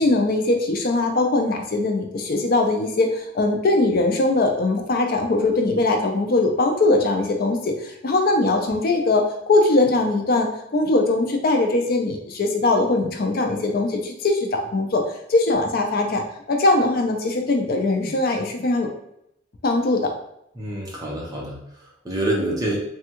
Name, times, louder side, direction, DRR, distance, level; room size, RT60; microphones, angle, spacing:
voice 1, 0.0-15.0 15.3-16.2 16.5-18.9 19.6-20.1, left 2 dB, 50° left, 3 dB, 0.4 m, -21 dB
voice 2, 20.6-22.8, right 1 dB, 20° right, -4 dB, 0.7 m, -27 dB
3.3 x 2.3 x 2.9 m, 0.76 s
head